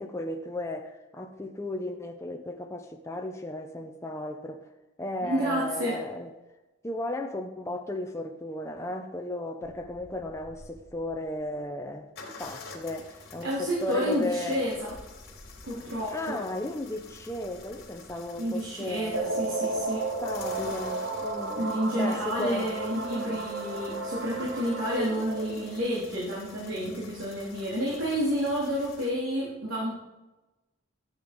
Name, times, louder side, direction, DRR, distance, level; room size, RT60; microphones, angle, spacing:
voice 1, 0.0-4.7 5.0-6.3 6.8-12.1 12.4-14.7 16.1-19.3 20.2-21.7 21.9-22.7, left 1 dB, 15° left, 3 dB, 0.7 m, -35 dB
voice 2, 5.2-6.0 13.4-14.9 15.6-16.4 18.4-20.1 21.6-29.9, equal, 90° right, -5 dB, 3.2 m, -30 dB
sound 1, 9.6-11.5 12.2-29.1, left 3 dB, 50° left, 3.2 m, -49 dB
sound 2, 19.1-25.8, right 2 dB, 70° right, 1.7 m, -33 dB
14.0 x 8.0 x 5.2 m, 1.1 s
head